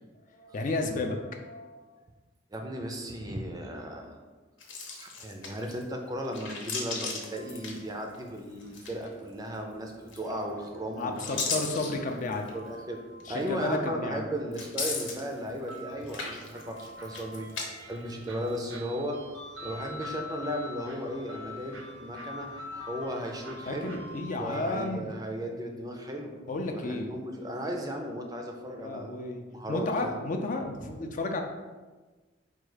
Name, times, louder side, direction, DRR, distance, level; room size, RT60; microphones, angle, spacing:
voice 1, 0.4-1.8 11.0-12.5 13.3-14.2 23.7-25.1 26.5-27.1 28.7-29.4 29.7-31.4, left 2 dB, 40° left, 3 dB, 0.4 m, -32 dB
voice 2, 2.5-4.2 5.0-11.5 12.5-13.0 13.3-19.2 19.6-23.9 24.3-26.3 26.6-29.2 29.5-30.2, equal, 20° right, 2 dB, 0.4 m, -36 dB
sound 1, 4.6-5.8 6.2-8.3 8.6-9.3 10.1-10.6 11.0-12.6 13.2-13.3 14.5-15.8 16.0-17.6 18.0-18.7, left 4 dB, 80° left, 0.9 m, -36 dB
sound 2, 7.3-24.9, left 2 dB, 85° right, 0.7 m, -47 dB
4.5 x 2.3 x 4.8 m, 1.3 s
head